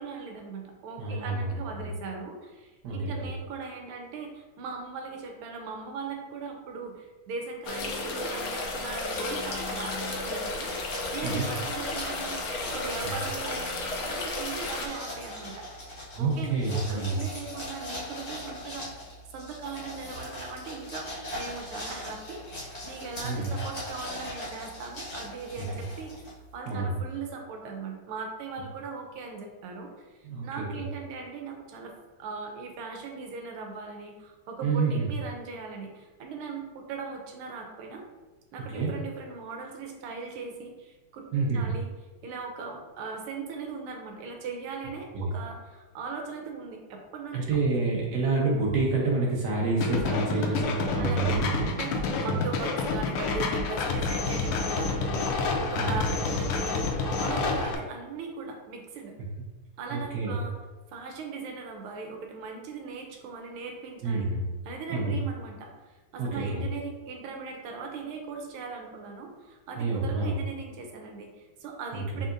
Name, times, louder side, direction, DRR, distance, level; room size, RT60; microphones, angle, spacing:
voice 1, 0.0-12.3 12.6-15.7 16.2-18.9 19.3-21.1 21.3-30.1 30.4-31.9 32.2-38.0 38.5-41.9 42.2-47.4 50.3-51.4 51.7-59.1 59.8-60.5 60.9-64.3 64.6-72.3, right 4 dB, 85° right, 2 dB, 1.6 m, -39 dB
voice 2, 1.0-1.9 2.8-3.3 11.2-11.5 13.0-13.1 16.1-17.2 23.2-23.5 25.6-25.8 26.7-27.0 30.2-30.8 34.6-35.1 38.7-38.9 41.3-41.7 45.1-45.3 47.3-51.7 52.2-52.3 55.7-56.0 59.9-60.4 64.0-64.5 64.9-65.2 66.2-66.6 69.8-70.3 71.9-72.0, right 3 dB, 60° right, -2 dB, 1.2 m, -28 dB
sound 1, 7.6-14.9, left 2 dB, 70° left, 0.8 m, -33 dB
sound 2, 9.1-26.6, left 1 dB, 35° left, 1.4 m, -41 dB
sound 3, 49.8-57.7, left 4 dB, 90° left, 1.5 m, -29 dB
5.4 x 3.6 x 2.5 m, 1.2 s
omnidirectional pair, 2.3 m